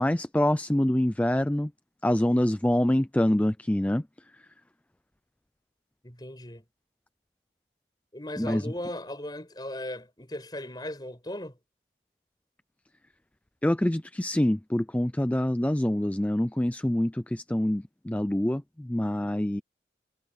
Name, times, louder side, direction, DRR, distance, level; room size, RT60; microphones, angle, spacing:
voice 1, 0.0-1.7 2.0-4.0 8.4-8.6 13.6-19.6, left 1 dB, 10° left, 0.4 m, -25 dB
voice 2, 6.0-6.6 8.1-11.6, left 1 dB, 25° left, 5.8 m, -37 dB
head